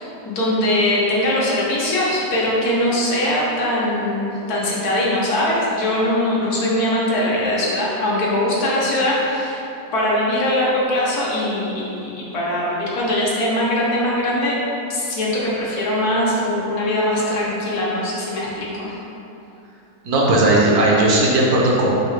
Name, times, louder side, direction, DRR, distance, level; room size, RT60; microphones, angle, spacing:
voice 1, 0.0-9.6 9.9-14.6 14.9-19.0, left 1 dB, 80° left, -5 dB, 1.3 m, -21 dB
voice 2, 20.0-21.9, right 2 dB, 75° right, -4 dB, 1.2 m, -16 dB
4.0 x 2.3 x 4.3 m, 2.9 s
omnidirectional pair, 1.6 m